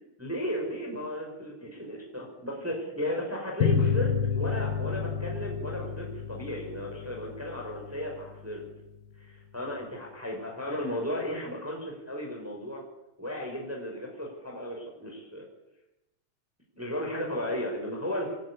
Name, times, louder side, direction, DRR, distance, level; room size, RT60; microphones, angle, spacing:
voice 1, 0.2-8.6 9.2-12.8 13.2-15.4 16.8-18.4, equal, 5° right, 0 dB, 5.4 m, -35 dB
sound 1, 3.6-8.7, left 6 dB, 70° left, 2.9 m, -30 dB
26.5 x 12.0 x 9.8 m, 0.93 s
omnidirectional pair, 4.3 m